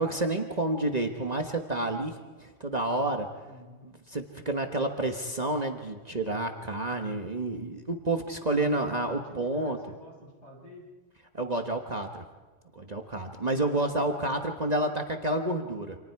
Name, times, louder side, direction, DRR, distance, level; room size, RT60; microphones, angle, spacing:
voice 1, 0.0-3.3 4.1-9.8 11.3-12.2 12.7-16.0, right 2 dB, 35° right, 3 dB, 1.4 m, -29 dB
voice 2, 3.4-3.8 8.6-10.9 13.8-14.3, left 1 dB, 70° left, -2 dB, 6.8 m, -50 dB
29.0 x 27.0 x 4.7 m, 1.3 s
omnidirectional pair, 1.2 m